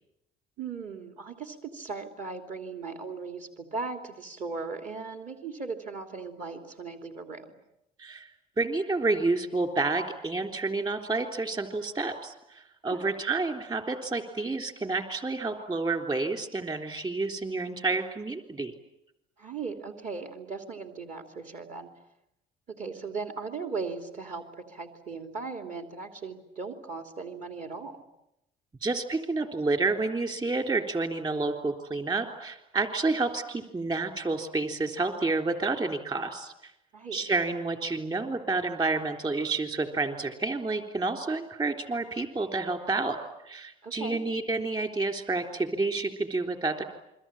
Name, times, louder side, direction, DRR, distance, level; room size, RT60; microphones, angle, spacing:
voice 1, 0.6-7.5 12.8-13.1 19.4-21.9 22.7-27.9 36.9-37.2 43.8-44.2, right 4 dB, 50° right, 5 dB, 3.1 m, -38 dB
voice 2, 8.6-18.7 28.8-36.7 37.1-43.2 43.5-46.8, right 3 dB, 25° right, 6 dB, 3.6 m, -29 dB
28.5 x 23.0 x 9.0 m, 0.83 s
cardioid pair, 110°, 17 cm